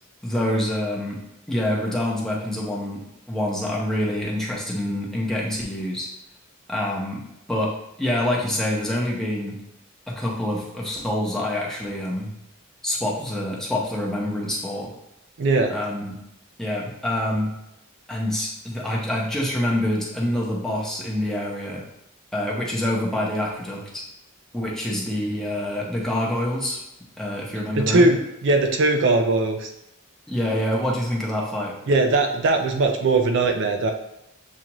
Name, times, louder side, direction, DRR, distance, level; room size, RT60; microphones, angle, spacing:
voice 1, 0.2-1.2 1.5-3.0 3.3-6.1 6.7-7.2 7.5-7.7 8.0-9.6 10.1-12.3 12.8-14.9 15.7-16.2 16.6-17.5 18.1-21.8 22.3-24.0 24.5-26.8 27.2-28.1 30.3-31.7, left 1 dB, ahead, -4 dB, 0.9 m, -26 dB
voice 2, 15.4-15.7 27.7-29.7 31.9-33.9, right 2 dB, 55° right, 4 dB, 0.4 m, -20 dB
7.2 x 2.5 x 2.9 m, 0.84 s
head